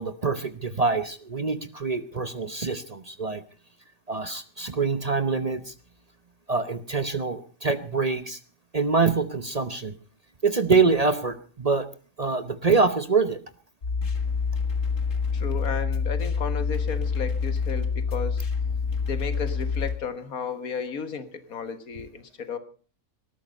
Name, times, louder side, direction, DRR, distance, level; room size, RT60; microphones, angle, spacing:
voice 1, 0.0-3.4 4.1-5.7 6.5-8.4 8.7-9.9 10.4-11.9 12.2-13.4, right 4 dB, 35° right, 12 dB, 0.8 m, -25 dB
sound 1, 13.8-20.0, left 5 dB, 65° left, 2.1 m, -27 dB
voice 2, 15.3-18.4 19.1-22.6, left 6 dB, 85° left, 11 dB, 2.0 m, -33 dB
18.5 x 13.5 x 5.2 m, 0.40 s
omnidirectional pair, 1.5 m